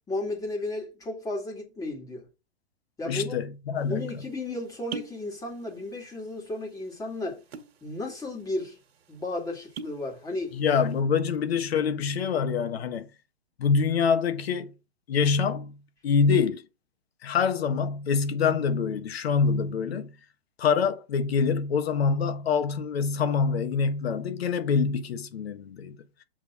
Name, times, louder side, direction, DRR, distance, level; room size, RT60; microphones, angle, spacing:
voice 1, 0.1-2.3 3.0-3.4 3.9-7.4 7.8-8.8 9.1-10.5, left 2 dB, 10° left, 2.2 m, -34 dB
voice 2, 3.0-4.1 10.5-13.1 13.6-14.7 15.1-15.7 16.0-16.7 17.2-20.1 20.6-26.0, left 6 dB, 65° left, 1.4 m, -25 dB
sound 1, 3.8-3.9 4.7-5.3 5.5-6.2 6.5-6.6 7.3-7.8 8.3-8.4 8.6-8.8 9.5-10.1 10.5-10.9, right 5 dB, 70° right, 1.6 m, -39 dB
7.6 x 3.5 x 5.5 m
hypercardioid pair, 145°, 33 cm